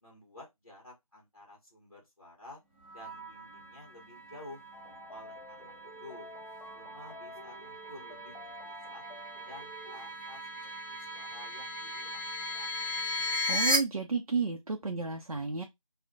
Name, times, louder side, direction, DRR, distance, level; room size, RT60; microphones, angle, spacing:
voice 1, 0.0-2.6 2.9-4.6 5.1-6.3 6.7-8.3 8.6-9.1 9.4-12.8, left 2 dB, 40° left, 0.8 m, -52 dB
sound 1, 2.8-13.8, left 1 dB, 20° right, 0.9 m, -37 dB
sound 2, 4.7-10.0, left 3 dB, 75° left, 0.5 m, -50 dB
voice 2, 13.5-15.6, right 4 dB, 70° right, 0.5 m, -32 dB
2.2 x 2.0 x 2.7 m
figure-of-eight pair, 170°, 19 cm